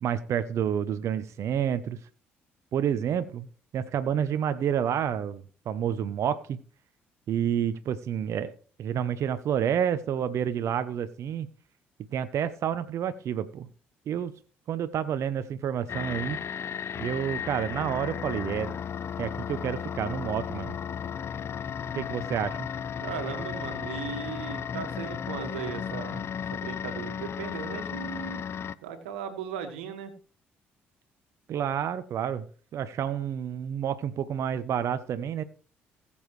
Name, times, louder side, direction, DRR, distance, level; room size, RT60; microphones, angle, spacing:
voice 1, 0.0-2.0 2.7-3.5 3.7-6.6 7.3-8.5 8.8-11.5 12.1-13.7 14.1-14.3 14.7-16.4 17.0-18.7 19.2-20.7 21.9-22.7 31.5-32.4 32.7-35.4, right 9 dB, 60° right, 11 dB, 0.8 m, -29 dB
sound 1, 15.9-28.7, left 7 dB, 50° left, 0.6 m, -34 dB
voice 2, 23.0-28.5 28.8-30.1, right 8 dB, 90° right, 7 dB, 1.7 m, -37 dB
19.5 x 7.1 x 3.2 m, 0.42 s
hypercardioid pair, 55°, 6 cm